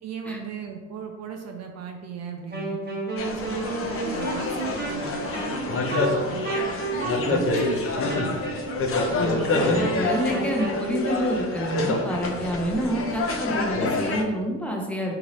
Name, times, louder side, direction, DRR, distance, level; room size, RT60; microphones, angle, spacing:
voice 1, 0.0-2.8 3.2-6.5 6.9-8.4 9.1-9.8 12.7-12.8, right 5 dB, 60° right, 3 dB, 0.5 m, -37 dB
Wind instrument woodwind instrument, 2.5-10.8, right 2 dB, 35° right, 1.0 m, -32 dB
sound 1, 3.2-14.2, left 3 dB, 50° left, 0.6 m, -27 dB
voice 2, 9.2-15.1, right 1 dB, 5° left, -1 dB, 0.7 m, -28 dB
3.7 x 2.8 x 3.0 m, 1.3 s
cardioid pair, 90°, 30 cm